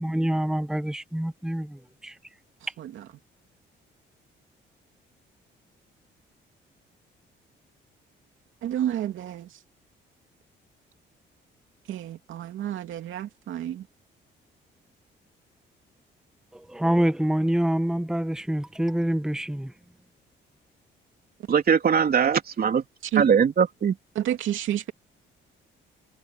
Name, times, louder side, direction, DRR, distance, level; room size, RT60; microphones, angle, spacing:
voice 1, 0.0-2.1 16.5-19.7, right 1 dB, 5° right, 1.3 m, -26 dB
voice 2, 2.8-3.1 8.6-9.6 11.9-13.9 23.1-23.3 24.1-24.9, right 11 dB, 80° right, 2.7 m, -30 dB
voice 3, 21.5-22.8 23.2-23.9, right 7 dB, 50° right, 3.4 m, -21 dB
cardioid pair, 90°, 20 cm